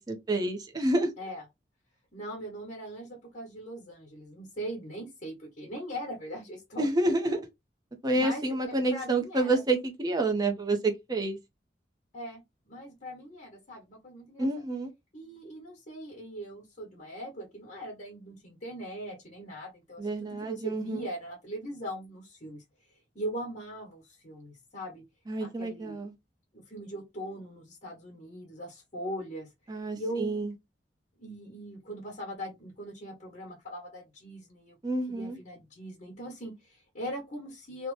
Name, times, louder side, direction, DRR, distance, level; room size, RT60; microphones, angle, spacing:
voice 1, 0.0-1.1 6.8-7.4 8.0-11.4 14.4-14.9 20.0-21.1 25.3-26.1 29.7-30.5 34.8-35.4, right 2 dB, 25° right, 0.5 m, -28 dB
voice 2, 2.1-6.9 8.1-9.6 12.1-14.5 15.1-22.6 23.1-25.0 25.4-26.1 26.5-29.5 29.9-30.4 31.2-34.8 35.1-37.9, equal, 40° left, 1.0 m, -40 dB
2.7 x 2.1 x 3.1 m
head